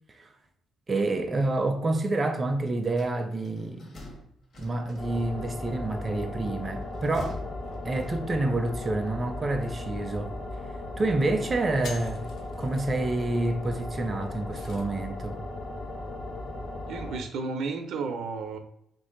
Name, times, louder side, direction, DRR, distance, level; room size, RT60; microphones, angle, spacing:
voice 1, 0.9-4.0 4.6-7.4 7.8-10.4 11.0-12.3 12.6-15.4, right 2 dB, 30° right, 0.4 m, -28 dB
sound 1, 2.8-5.4 6.7-8.5, left 2 dB, 55° left, 1.1 m, -45 dB
sound 2, 5.0-17.2, left 2 dB, 40° left, 0.8 m, -37 dB
sound 3, 11.8-15.1, left 5 dB, 75° left, 0.5 m, -48 dB
voice 2, 16.9-18.6, right 4 dB, 75° right, 0.5 m, -32 dB
2.8 x 2.6 x 3.7 m
cardioid pair, 90°, 0 cm